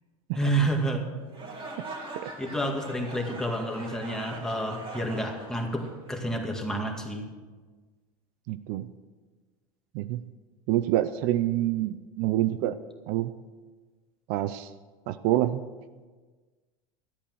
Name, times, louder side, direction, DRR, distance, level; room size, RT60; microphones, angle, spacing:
voice 1, 0.3-1.1 2.4-7.3, right 1 dB, 5° left, 1 dB, 2.1 m, -29 dB
sound 1, 1.3-6.5, right 2 dB, 30° right, 2.4 m, -42 dB
voice 2, 8.5-8.9 9.9-10.2 10.7-12.7 13.1-13.3 14.3-14.7 15.1-15.6, right 14 dB, 65° right, 13 dB, 0.5 m, -27 dB
13.5 x 8.5 x 6.3 m, 1.4 s
supercardioid pair, 110°, 17 cm